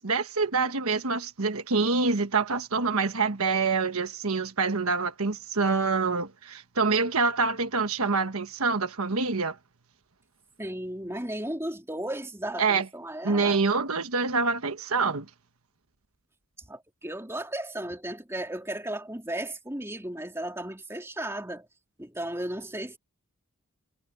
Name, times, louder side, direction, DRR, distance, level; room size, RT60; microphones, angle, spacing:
voice 1, 0.0-9.6 12.6-12.8 13.2-15.2, right 4 dB, 80° right, 1.3 m, -26 dB
voice 2, 10.6-13.6 16.7-21.7 22.0-23.0, right 1 dB, 10° right, 3.5 m, -35 dB
head